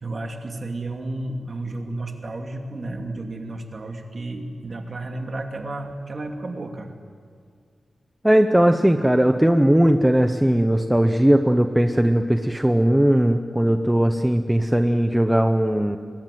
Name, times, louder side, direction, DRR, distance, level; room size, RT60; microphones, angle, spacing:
voice 1, 0.0-6.9, right 2 dB, 35° right, 4 dB, 2.6 m, -32 dB
voice 2, 8.2-16.0, right 1 dB, 5° right, 6 dB, 0.8 m, -18 dB
24.5 x 21.0 x 9.3 m, 2.2 s
wide cardioid pair, 175°, 0 cm